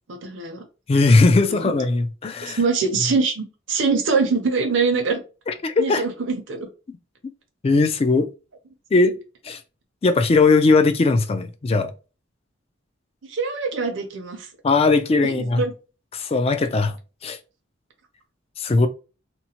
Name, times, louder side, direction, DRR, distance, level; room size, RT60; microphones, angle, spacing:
voice 1, 0.1-0.6 1.3-1.7 2.4-5.2 5.8-6.7 13.3-14.5 15.2-15.7, right 4 dB, 70° right, 0.6 m, -24 dB
voice 2, 0.9-2.6 5.5-6.0 7.6-8.3 8.9-9.2 9.4-9.6 10.0-11.9 14.6-15.6 16.1-17.0 17.2-17.4 18.6-18.9, left 3 dB, 30° left, 0.3 m, -19 dB
2.9 x 2.1 x 2.8 m
head